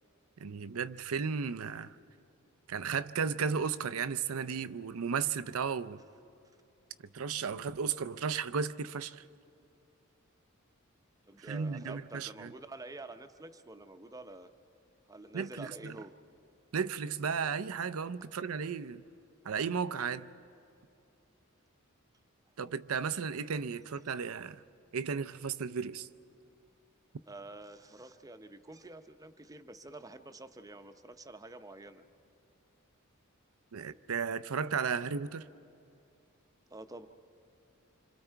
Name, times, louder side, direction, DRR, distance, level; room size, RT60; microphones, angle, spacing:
voice 1, 0.4-2.0 2.7-6.0 7.1-9.2 11.4-12.5 15.3-16.0 16.7-19.0 19.4-20.3 22.6-24.6 24.9-26.1 33.7-35.5, right 6 dB, 85° right, 0.6 m, -34 dB
voice 2, 11.3-14.5 15.1-16.1 27.3-32.0 36.7-37.1, right 2 dB, 15° right, 0.7 m, -48 dB
26.5 x 26.0 x 4.6 m
head